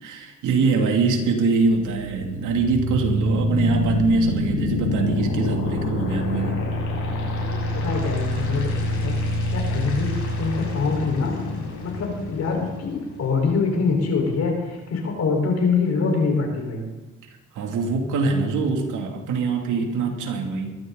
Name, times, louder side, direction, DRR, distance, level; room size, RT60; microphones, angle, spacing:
voice 1, 0.0-6.6 17.5-20.8, right 4 dB, 85° right, 2 dB, 2.9 m, -23 dB
sound 1, 1.7-13.7, left 1 dB, 85° left, 6.6 m, -26 dB
voice 2, 7.4-9.2 9.5-11.4 11.8-16.8, left 4 dB, 55° left, 1 dB, 4.9 m, -24 dB
21.5 x 14.5 x 4.1 m, 1.1 s
cardioid pair, 90°, 30 cm